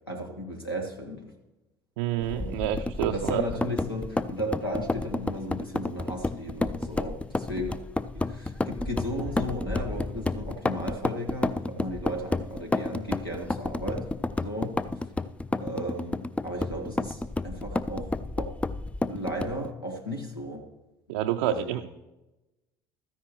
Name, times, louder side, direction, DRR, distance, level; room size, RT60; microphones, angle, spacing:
voice 1, 0.1-1.2 2.2-2.5 3.0-7.8 8.1-14.1 14.4-14.8 15.5-18.5 19.1-20.6 21.4-21.9, equal, 90° left, 2 dB, 1.5 m, -35 dB
voice 2, 2.0-3.4 21.1-21.9, right 11 dB, 65° right, 5 dB, 0.4 m, -28 dB
sound 1, 2.2-19.7, left 2 dB, 10° left, 0.4 m, -31 dB
15.0 x 13.0 x 3.1 m, 1.0 s
figure-of-eight pair, 60°, 12 cm